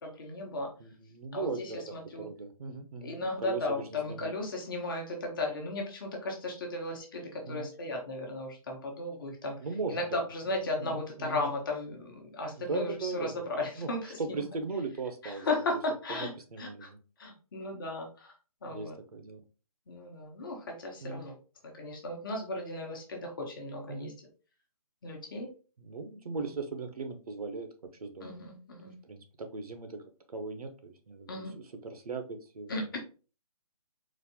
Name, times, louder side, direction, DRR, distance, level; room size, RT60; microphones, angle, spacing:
voice 1, 0.0-0.7 1.3-2.3 3.0-9.6 9.9-14.4 15.2-16.3 16.6-16.9 17.2-18.3 18.6-18.9 19.9-21.3 21.8-24.1 25.0-25.5 28.2-28.9 31.3-31.5 32.7-33.0, left 2 dB, 35° left, 1 dB, 1.0 m, -35 dB
voice 2, 0.8-1.8 2.2-3.8 4.1-4.3 7.5-7.7 9.6-10.2 10.7-11.4 12.6-13.3 13.8-13.9 14.2-15.8 16.1-17.0 18.6-19.4 21.0-21.2 23.9-24.1 25.8-27.7 28.0-28.4 29.0-30.0 30.3-31.4 31.8-32.8, right 4 dB, 75° right, 7 dB, 0.9 m, -38 dB
4.1 x 2.5 x 2.9 m, 0.35 s
hypercardioid pair, 165°, 20 cm